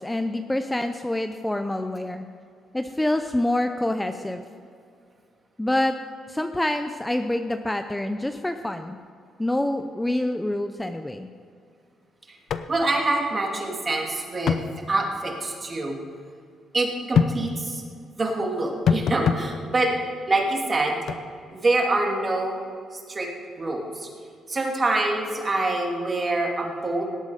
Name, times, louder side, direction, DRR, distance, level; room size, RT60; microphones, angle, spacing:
voice 1, 0.0-2.2 2.7-4.4 5.6-5.9 6.3-9.0 9.4-11.3, left 1 dB, 10° left, 7 dB, 0.6 m, -26 dB
sound 1, 12.5-12.7 13.0-13.1 14.5-14.7 17.1-17.4 18.9-19.4 21.1-21.2, left 7 dB, 65° left, 0.7 m, -22 dB
voice 2, 12.7-16.0 16.7-17.8 18.2-19.9 20.3-21.0 21.5-22.6 22.9-23.3 23.6-24.1 24.5-27.0, right 2 dB, 30° right, 0 dB, 2.6 m, -25 dB
18.0 x 8.2 x 5.1 m, 2.4 s
cardioid pair, 90°, 0 cm